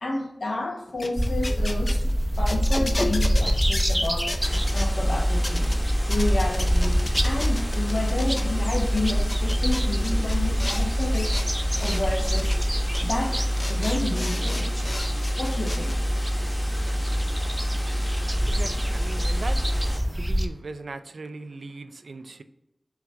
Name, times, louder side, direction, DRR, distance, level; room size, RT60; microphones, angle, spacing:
voice 1, 0.0-4.3 4.7-5.7 6.1-12.6 13.0-14.9 15.4-16.3, left 2 dB, 75° left, 0.9 m, -31 dB
sound 1, 0.9-4.9 5.4-5.8 6.1-8.4 8.9-10.9 11.1-12.0 12.3-12.6 12.9-13.0 13.4-15.9, left 1 dB, 45° left, 0.5 m, -34 dB
sound 2, 1.2-20.5, equal, 15° right, 0.4 m, -27 dB
sound 3, 4.4-20.0, equal, 15° left, 0.9 m, -27 dB
voice 2, 18.5-19.6 20.1-22.4, right 3 dB, 85° right, 0.3 m, -38 dB
4.5 x 2.4 x 3.8 m
wide cardioid pair, 50°, 0 cm